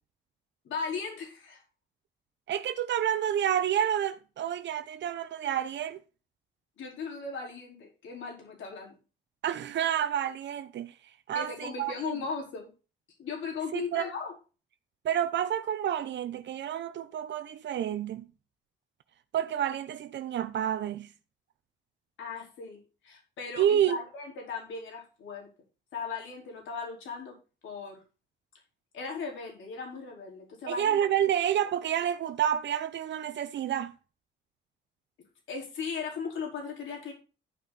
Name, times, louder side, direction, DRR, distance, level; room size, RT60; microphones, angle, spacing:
voice 1, 0.6-1.6 6.8-8.9 11.3-12.7 13.2-14.3 22.2-25.5 25.9-27.4 27.6-28.0 28.9-31.3 35.5-37.1, left 5 dB, 75° left, 4.6 m, -37 dB
voice 2, 2.5-6.0 9.4-10.9 11.3-12.2 13.7-14.1 15.0-18.2 19.3-21.1 23.6-24.0 30.7-33.9, right 10 dB, 65° right, 0.8 m, -29 dB
13.5 x 5.9 x 4.2 m
cardioid pair, 90°, 20 cm